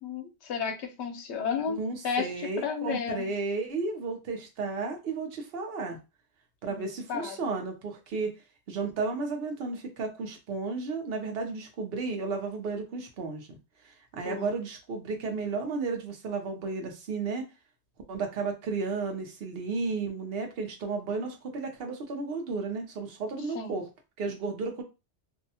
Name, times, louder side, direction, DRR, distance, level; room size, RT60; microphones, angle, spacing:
voice 1, 0.0-1.8 2.0-3.3 6.7-7.4 14.2-14.5 23.5-23.8, left 6 dB, 75° left, 5 dB, 0.9 m, -33 dB
voice 2, 1.7-6.0 6.6-8.3 8.7-13.6 13.8-17.4 18.1-23.9 24.2-24.8, right 4 dB, 60° right, 3 dB, 0.9 m, -33 dB
2.7 x 2.1 x 2.7 m, 0.27 s
omnidirectional pair, 1.2 m